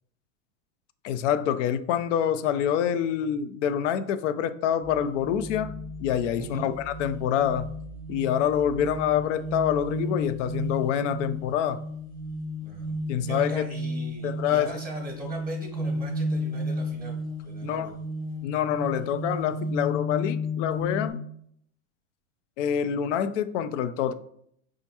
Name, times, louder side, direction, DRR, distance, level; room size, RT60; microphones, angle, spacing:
voice 1, 1.0-5.7 6.0-7.7 8.1-11.8 13.1-13.6 14.2-14.8 17.6-17.9 18.4-21.2 22.6-24.1, left 9 dB, 65° left, 12 dB, 0.5 m, -26 dB
sound 1, 4.8-21.1, left 1 dB, 20° left, 0.7 m, -33 dB
voice 2, 6.3-6.7 12.6-17.2 17.4-18.0, right 1 dB, 5° right, -2 dB, 0.9 m, -40 dB
5.0 x 2.4 x 2.8 m, 0.68 s
hypercardioid pair, 110°, 39 cm